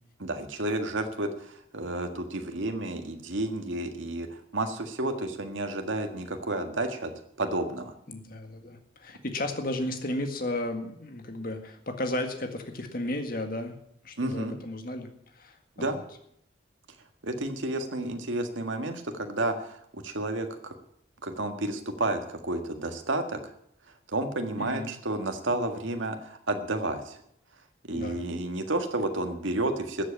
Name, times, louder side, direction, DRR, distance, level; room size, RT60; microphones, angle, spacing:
voice 1, 0.2-4.3 4.5-7.1 7.4-7.9 14.2-14.6 15.8-16.0 17.2-20.7 21.2-23.4 24.1-27.2 27.8-30.0, right 2 dB, 80° right, 5 dB, 1.8 m, -31 dB
voice 2, 8.1-13.8 14.0-16.0 24.6-24.9 27.9-28.2, left 1 dB, 45° left, 5 dB, 1.8 m, -34 dB
14.0 x 7.8 x 8.4 m, 0.72 s
head